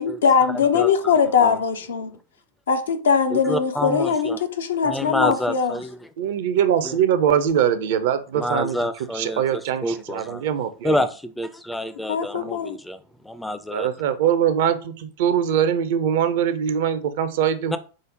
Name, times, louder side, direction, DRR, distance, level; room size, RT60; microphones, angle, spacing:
voice 1, 0.0-2.1 2.7-5.8 12.1-12.8, left 6 dB, 65° left, 0.6 m, -21 dB
voice 2, 3.3-4.4 4.8-6.0 6.8-7.0 8.3-10.4 10.8-13.0 13.2-13.9 17.7-17.8, left 1 dB, 5° left, 0.4 m, -27 dB
voice 3, 6.2-8.8 9.1-11.0 12.3-12.5 13.7-17.8, right 9 dB, 55° right, 0.5 m, -22 dB
5.0 x 2.0 x 3.9 m
figure-of-eight pair, 90°, 0 cm